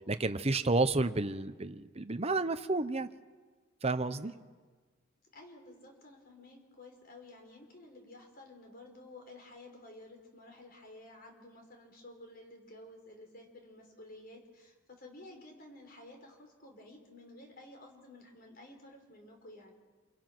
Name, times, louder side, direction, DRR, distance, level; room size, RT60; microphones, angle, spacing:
voice 1, 0.0-3.1 3.8-4.3, right 3 dB, 30° right, 10 dB, 0.9 m, -31 dB
voice 2, 4.1-4.6 5.3-19.7, left 1 dB, 45° left, 2 dB, 5.0 m, -53 dB
28.5 x 27.5 x 6.1 m, 1.4 s
head